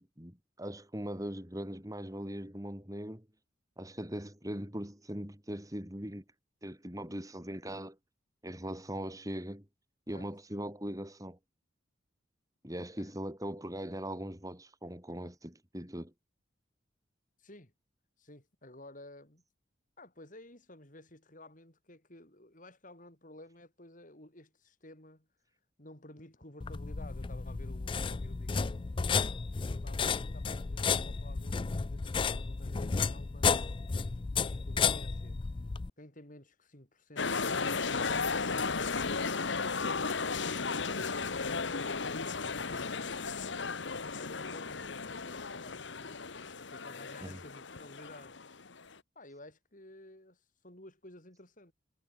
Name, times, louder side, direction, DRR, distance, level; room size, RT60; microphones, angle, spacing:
voice 1, 0.0-3.3 3.8-6.2 6.6-8.0 8.4-9.6 10.1-11.4 12.6-16.1 47.2-47.4, equal, 20° right, 4.9 m, -40 dB
voice 2, 17.4-17.7 18.2-19.4 20.0-25.3 25.8-28.8 29.6-33.7 34.4-35.4 36.0-37.4 40.1-40.9 42.2-43.2 44.1-46.2 46.7-48.4 49.1-51.7, left 1 dB, 45° left, 6.3 m, -53 dB
sound 1, 26.6-35.9, left 5 dB, 25° left, 0.4 m, -32 dB
sound 2, 37.2-48.9, left 4 dB, 70° left, 1.3 m, -35 dB
head